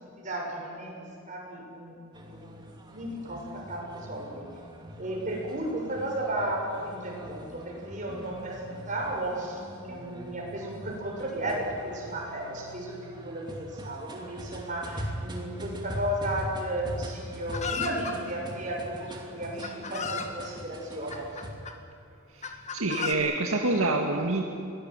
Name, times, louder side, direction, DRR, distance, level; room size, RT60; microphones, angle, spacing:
voice 1, 0.2-4.5 5.0-21.2, right 1 dB, 35° right, -2 dB, 7.0 m, -34 dB
sound 1, 2.1-21.5, equal, 20° right, 2.6 m, -42 dB
Chicken rooster, 17.5-18.2 19.1-19.2 19.6-20.3 21.1-21.7 22.4-23.1, left 6 dB, 35° left, 1.8 m, -34 dB
voice 2, 22.3-24.4, right 2 dB, 75° right, 2 dB, 1.9 m, -27 dB
22.5 x 18.0 x 9.6 m, 2.6 s
head